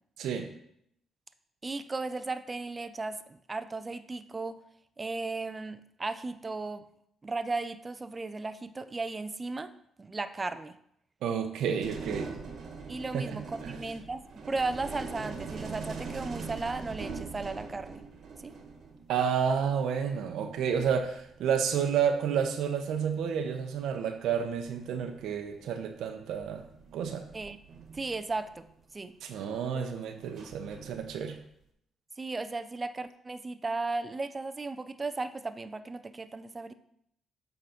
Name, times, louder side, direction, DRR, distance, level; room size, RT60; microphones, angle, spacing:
voice 1, 0.2-0.5 11.2-12.3 13.1-13.8 19.1-26.6 26.9-27.2 29.2-31.4, right 7 dB, 80° right, 6 dB, 0.8 m, -30 dB
voice 2, 1.6-4.6 5.0-6.9 7.2-9.7 10.0-10.8 12.9-18.0 18.4-18.6 27.3-27.6 27.9-28.7 28.9-29.2 32.2-36.7, right 3 dB, 25° right, 11 dB, 0.5 m, -35 dB
sound 1, 11.8-19.2 20.4-20.5 20.7-22.0 23.1-23.4 24.6-24.7 25.2-25.5 26.3-28.7 30.2-31.4, right 4 dB, 60° right, 1.4 m, -42 dB
8.0 x 3.9 x 5.8 m, 0.73 s
cardioid pair, 90°, 0 cm